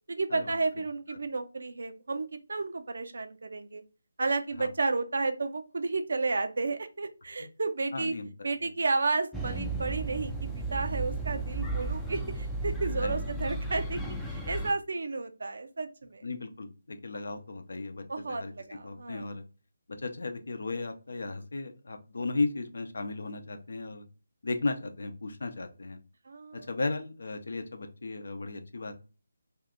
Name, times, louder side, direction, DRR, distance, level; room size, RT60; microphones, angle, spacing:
voice 1, 0.1-3.8 4.2-8.1 8.4-10.3 10.7-14.0 14.3-16.2 18.1-19.2 26.3-26.7, right 3 dB, 65° right, 8 dB, 0.5 m, -32 dB
voice 2, 7.9-8.7 13.0-13.2 16.2-19.4 20.0-24.0 24.4-26.0 26.5-28.9, left 3 dB, 65° left, 6 dB, 0.6 m, -35 dB
sound 1, 9.3-14.7, right 2 dB, ahead, 0.4 m, -34 dB
2.7 x 2.4 x 3.6 m, 0.34 s
figure-of-eight pair, 155°, 0 cm